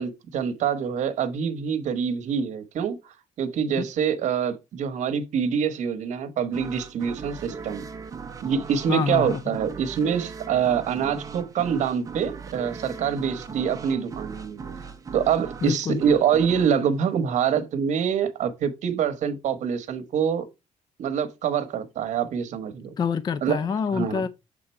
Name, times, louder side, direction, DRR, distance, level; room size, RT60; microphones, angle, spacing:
voice 1, 0.0-7.8 8.4-14.6 15.1-20.5 21.0-22.9 23.4-23.6 23.9-24.2, right 7 dB, 70° right, 1.0 m, -25 dB
sound 1, 6.5-18.0, right 5 dB, 25° right, 0.7 m, -39 dB
voice 2, 8.9-9.6 15.6-16.0 23.0-24.3, left 6 dB, 35° left, 0.4 m, -26 dB
7.3 x 3.8 x 4.3 m
cardioid pair, 165°, 13 cm